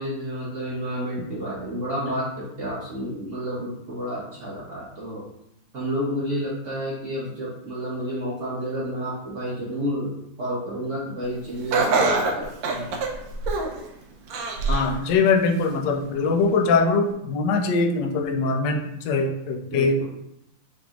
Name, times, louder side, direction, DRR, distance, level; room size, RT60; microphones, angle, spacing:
voice 1, 0.0-5.2 5.7-10.1 10.4-12.9 19.7-20.0, equal, 55° right, -5 dB, 0.8 m, -30 dB
Laughter, 11.7-13.8 14.3-14.9 15.4-15.5 16.5-16.6, right 3 dB, 70° right, 1.3 m, -24 dB
voice 2, 14.7-20.0, left 4 dB, 70° left, 2 dB, 1.1 m, -22 dB
7.0 x 3.1 x 2.4 m, 0.80 s
omnidirectional pair, 2.4 m